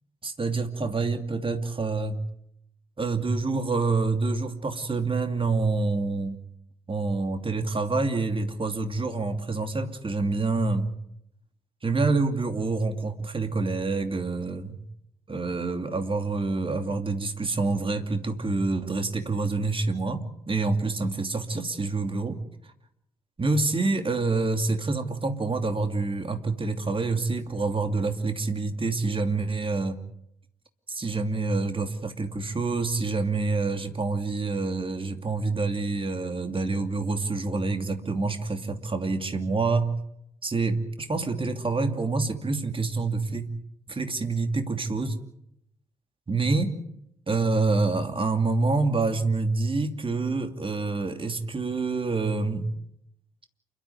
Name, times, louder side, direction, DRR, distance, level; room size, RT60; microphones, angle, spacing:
voice 1, 0.2-2.2 3.0-6.4 6.9-10.9 11.8-14.8 15.3-22.4 23.4-30.0 30.9-40.0 40.4-43.5 43.9-45.2 46.3-46.8 47.3-52.7, right 3 dB, 30° right, 7 dB, 2.7 m, -27 dB
28.5 x 13.0 x 9.4 m, 0.78 s
figure-of-eight pair, 40°, 19 cm